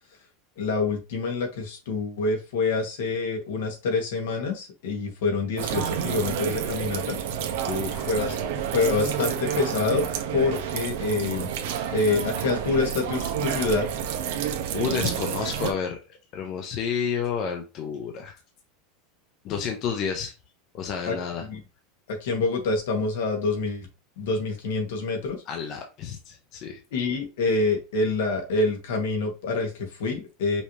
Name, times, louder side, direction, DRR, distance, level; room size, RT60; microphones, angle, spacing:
voice 1, 0.6-7.2 8.1-8.4 8.7-10.0 10.3-11.5 11.9-13.8 21.0-21.1 21.4-21.6 22.1-23.9 24.2-25.4 26.9-30.6, left 3 dB, 80° left, 3 dB, 1.7 m, -26 dB
sound 1, 5.6-15.7, right 8 dB, 60° right, 0.9 m, -29 dB
voice 2, 7.7-8.1 14.7-16.0 16.3-18.4 19.4-20.3 20.7-21.4 25.5-26.8, left 7 dB, 30° left, 3 dB, 0.7 m, -30 dB
5.4 x 2.8 x 3.2 m, 0.29 s
supercardioid pair, 180°, 0 cm